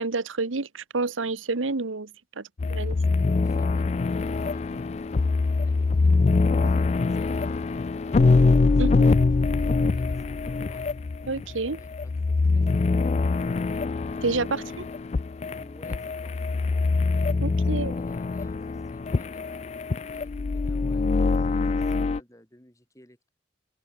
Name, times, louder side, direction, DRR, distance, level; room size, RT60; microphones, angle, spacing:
voice 1, 0.0-2.1 2.4-3.0 8.8-8.9 11.3-11.8 14.2-14.8 17.4-17.9, right 3 dB, 90° right, 1.2 m, -29 dB
sound 1, 2.6-22.2, left 3 dB, 35° left, 0.3 m, -24 dB
voice 2, 3.2-5.2 5.5-10.8 11.7-13.9 14.4-15.0 15.6-17.1 17.7-19.6 20.1-23.3, equal, 15° left, 6.6 m, -55 dB
sound 2, 4.4-10.9, equal, 25° right, 7.9 m, -54 dB
open air
head